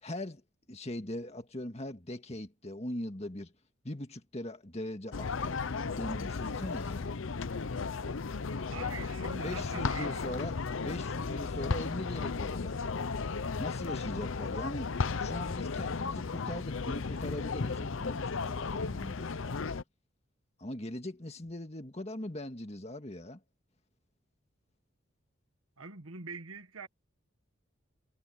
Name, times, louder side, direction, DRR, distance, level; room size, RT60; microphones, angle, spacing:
voice 1, 0.0-0.4 0.7-3.5 3.8-5.4 5.9-7.1 8.8-8.9 9.4-10.5 10.8-13.0 13.6-19.6 20.6-23.4, left 1 dB, 30° left, 1.9 m, -40 dB
sound 1, 5.1-19.8, left 4 dB, 70° left, 0.7 m, -35 dB
voice 2, 8.7-10.4 25.8-26.9, right 4 dB, 80° right, 1.5 m, -44 dB
head